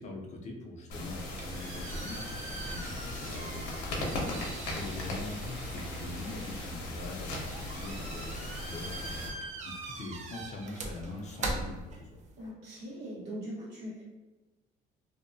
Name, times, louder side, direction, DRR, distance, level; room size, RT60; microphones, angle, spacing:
voice 1, 0.0-4.1 4.5-12.1, left 2 dB, 45° left, 0 dB, 0.5 m, -43 dB
sound 1, 0.9-9.3, left 1 dB, 80° left, 0.7 m, -38 dB
sound 2, 1.0-12.5, right 3 dB, 45° right, 0.5 m, -42 dB
voice 2, 12.4-14.0, equal, 80° right, -7 dB, 1.3 m, -41 dB
2.7 x 2.0 x 2.6 m, 1.1 s
cardioid pair, 110°, 17 cm